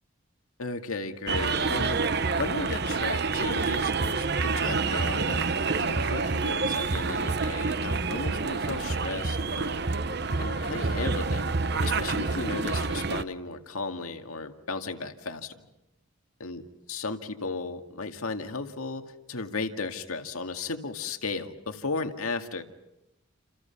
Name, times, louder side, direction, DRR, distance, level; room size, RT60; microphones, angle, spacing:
voice 1, 0.6-2.0 2.4-9.8 10.4-11.5 11.8-15.7 16.4-16.6 16.9-22.6, left 3 dB, 85° left, 6 dB, 2.1 m, -35 dB
sound 1, 1.3-13.2, right 4 dB, 50° right, 0.9 m, -28 dB
29.5 x 28.5 x 5.9 m, 0.91 s
head